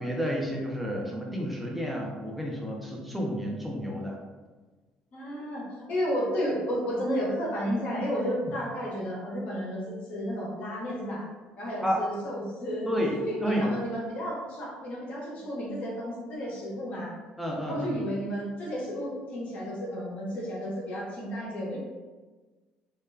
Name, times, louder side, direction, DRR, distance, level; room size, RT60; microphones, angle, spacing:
voice 1, 0.0-4.2 8.4-8.5 11.8-12.0 12.9-13.2 13.4-13.7 17.4-18.0, equal, ahead, -2 dB, 0.5 m, -30 dB
voice 2, 5.1-11.3 11.6-17.1 17.7-21.8, equal, 50° left, -3 dB, 0.7 m, -32 dB
2.2 x 2.1 x 3.3 m, 1.3 s
cardioid pair, 125°, 3 cm